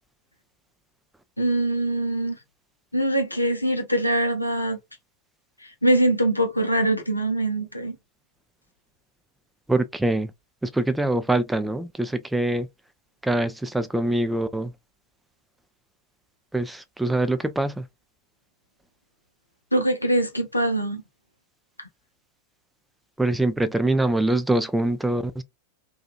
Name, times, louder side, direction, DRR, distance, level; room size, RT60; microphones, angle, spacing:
voice 1, 1.4-2.4 2.9-4.8 5.6-7.9 19.7-21.0, right 1 dB, 85° left, 0.6 m, -23 dB
voice 2, 9.7-10.3 10.6-12.7 13.2-14.7 16.5-17.9 23.2-25.4, right 2 dB, 5° right, 0.3 m, -24 dB
2.7 x 2.3 x 2.3 m
figure-of-eight pair, 90°, 0 cm